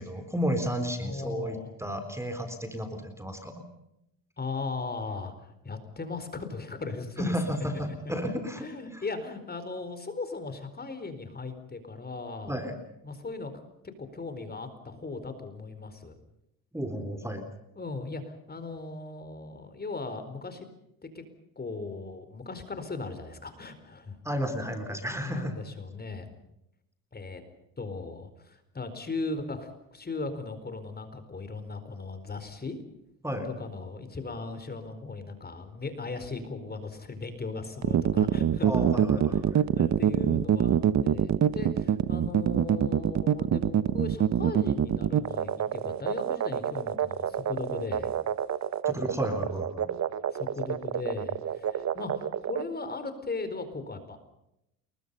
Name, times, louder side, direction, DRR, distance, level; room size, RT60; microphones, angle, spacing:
voice 1, 0.0-3.6 7.2-8.7 8.9-9.0 12.5-12.8 16.7-17.5 24.2-25.6 33.2-33.5 38.6-39.6 48.9-49.9, equal, 5° right, 7 dB, 4.0 m, -32 dB
voice 2, 1.0-1.7 4.4-7.3 7.9-8.0 8.6-12.6 13.0-13.5 14.0-16.2 17.8-20.7 21.0-21.2 21.6-24.2 25.2-26.4 27.1-27.4 27.8-32.8 33.4-39.0 39.3-39.4 39.8-48.1 50.4-54.2, left 3 dB, 25° left, 10 dB, 4.5 m, -38 dB
sound 1, 37.8-52.6, right 9 dB, 45° right, 1.3 m, -26 dB
30.0 x 21.5 x 5.5 m, 0.82 s
cardioid pair, 105°, 38 cm